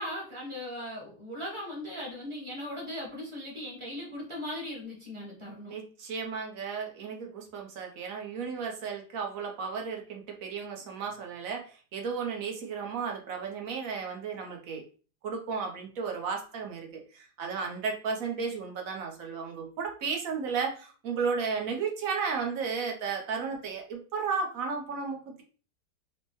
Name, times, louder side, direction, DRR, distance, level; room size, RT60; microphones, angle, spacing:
voice 1, 0.0-5.8, left 1 dB, 20° right, -3 dB, 1.0 m, -38 dB
voice 2, 5.7-14.8 15.2-25.4, right 5 dB, 60° right, 2 dB, 1.1 m, -34 dB
4.5 x 2.2 x 2.9 m, 0.39 s
omnidirectional pair, 1.8 m